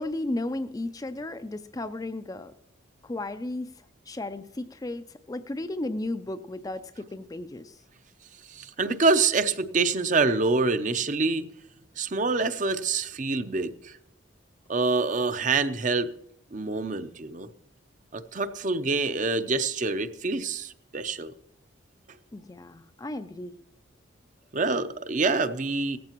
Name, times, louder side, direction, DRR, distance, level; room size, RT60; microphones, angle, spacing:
voice 1, 0.0-2.5 3.0-3.7 4.1-7.8 22.3-23.6, left 2 dB, 20° left, 10 dB, 0.4 m, -34 dB
voice 2, 8.5-11.4 12.0-13.9 14.7-16.1 16.5-17.5 18.1-21.3 24.5-26.0, right 3 dB, 40° right, 11 dB, 0.6 m, -26 dB
17.0 x 14.5 x 3.0 m, 0.77 s
head